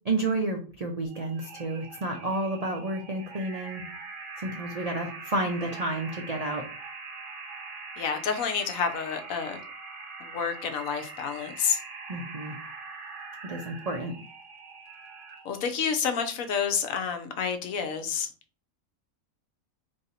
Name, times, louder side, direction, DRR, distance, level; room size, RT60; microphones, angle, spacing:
voice 1, 0.0-3.8 4.4-6.6 12.1-12.6 13.4-14.1, right 2 dB, 65° right, 0.3 m, -30 dB
sound 1, 1.0-15.6, right 4 dB, 40° right, 1.4 m, -43 dB
voice 2, 8.0-9.6 10.2-11.8 15.4-18.3, left 6 dB, 75° left, 1.1 m, -29 dB
3.4 x 2.7 x 4.0 m
omnidirectional pair, 1.5 m